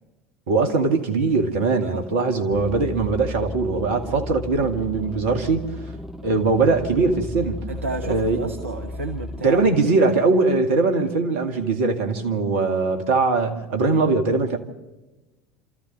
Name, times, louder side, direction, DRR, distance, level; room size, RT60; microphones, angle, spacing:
voice 1, 0.5-5.6 6.2-7.6 8.0-8.4 9.4-14.6, right 3 dB, 65° right, 2.1 m, -21 dB
sound 1, 2.5-9.7, left 1 dB, 5° right, 1.8 m, -34 dB
voice 2, 7.7-9.6, right 3 dB, 80° right, 1.1 m, -31 dB
29.0 x 14.0 x 6.7 m
figure-of-eight pair, 70°, 7 cm